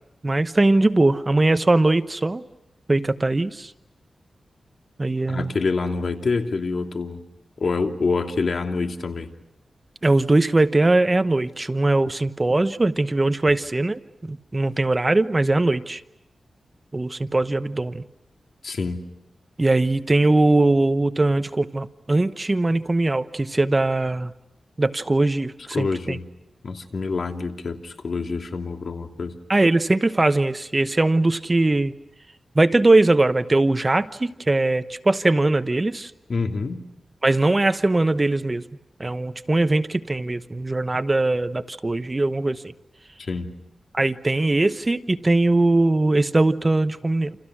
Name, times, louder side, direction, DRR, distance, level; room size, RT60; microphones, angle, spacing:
voice 1, 0.2-2.4 2.9-3.7 5.0-5.5 10.0-16.0 16.9-18.0 19.6-24.3 24.8-26.2 29.5-31.9 32.5-36.1 37.2-38.6 39.0-42.6 43.9-47.4, right 2 dB, 25° right, 12 dB, 1.0 m, -20 dB
voice 2, 5.3-7.3 7.6-9.3 18.6-19.1 25.7-26.3 26.6-29.4 36.3-36.8 43.3-43.6, left 4 dB, 60° left, 5 dB, 2.8 m, -26 dB
29.0 x 29.0 x 6.2 m, 0.89 s
wide cardioid pair, 85°, 0 cm